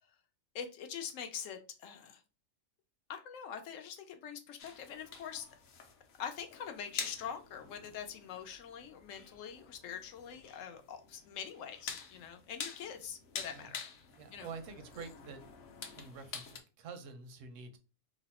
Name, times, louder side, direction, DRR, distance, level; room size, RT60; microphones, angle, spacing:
voice 1, 0.5-2.2 3.1-5.5 6.2-13.8 14.3-14.5, left 8 dB, 85° left, 1.0 m, -44 dB
sound 1, 4.6-16.6, left 6 dB, 60° left, 0.8 m, -47 dB
voice 2, 14.1-15.4 15.9-17.8, right 4 dB, 80° right, 1.0 m, -47 dB
3.0 x 2.0 x 4.1 m
omnidirectional pair, 1.3 m